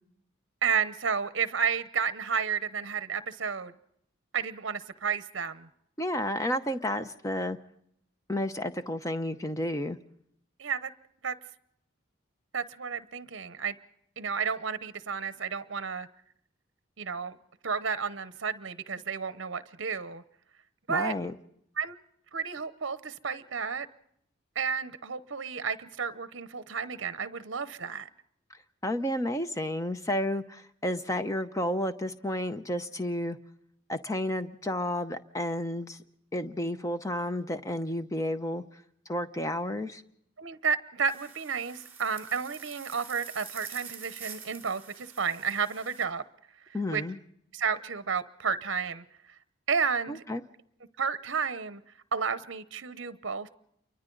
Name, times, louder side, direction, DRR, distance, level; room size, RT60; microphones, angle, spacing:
voice 1, 0.6-3.7 4.3-5.7 10.6-10.9 11.2-11.3 12.5-13.7 14.2-16.1 17.0-17.4 17.6-20.2 20.9-21.1 21.8-21.9 22.3-23.9 24.5-28.1 40.4-46.2 46.9-47.0 47.5-49.0 49.7-50.2 51.0-51.8 52.1-53.5, right 6 dB, 60° right, 13 dB, 0.8 m, -31 dB
voice 2, 6.0-7.6 8.3-10.0 20.9-21.3 28.8-33.4 33.9-36.0 36.3-38.6 39.1-40.0 46.7-47.2 50.1-50.4, left 1 dB, 15° left, 10 dB, 0.7 m, -31 dB
sound 1, 41.0-46.0, right 7 dB, 10° right, 2.7 m, -46 dB
28.5 x 24.0 x 3.9 m, 0.72 s
head